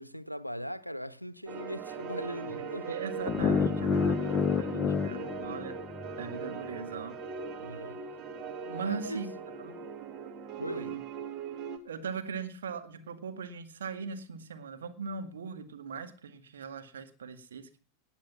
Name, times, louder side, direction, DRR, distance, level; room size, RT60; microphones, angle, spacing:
voice 1, 0.0-3.0 7.6-8.0 8.8-9.3 10.6-10.9, equal, 90° left, 0.7 m, -39 dB
sound 1, 1.5-11.8, right 5 dB, 35° right, 1.9 m, -40 dB
voice 2, 2.5-5.8 6.2-7.2 8.6-9.3 9.6-9.8 10.6-11.0 11.8-17.8, right 5 dB, 65° right, 1.9 m, -40 dB
sound 2, 3.3-6.3, left 6 dB, 25° left, 1.0 m, -29 dB
19.0 x 8.3 x 5.9 m
figure-of-eight pair, 90°, 0 cm